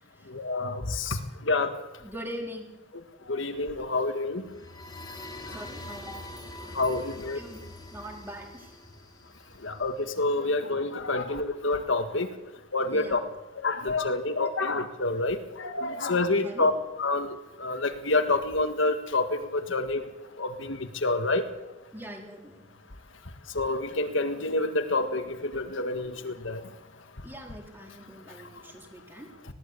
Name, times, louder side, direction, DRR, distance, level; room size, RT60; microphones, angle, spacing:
voice 1, 0.3-1.2 1.5-1.7 3.3-4.4 6.7-7.4 9.6-12.3 12.7-13.2 13.6-16.7 17.0-17.3 17.6-20.0 20.4-21.4 23.5-26.6, left 2 dB, 65° left, 7 dB, 1.7 m, -27 dB
voice 2, 2.0-2.7 5.5-6.3 7.1-7.6 7.9-8.8 12.9-13.2 16.4-16.7 21.9-22.8 27.2-29.3, equal, 10° right, 1 dB, 3.9 m, -42 dB
sound 1, 4.4-10.1, left 1 dB, 20° left, 2.9 m, -44 dB
20.5 x 16.5 x 8.4 m, 1.0 s
head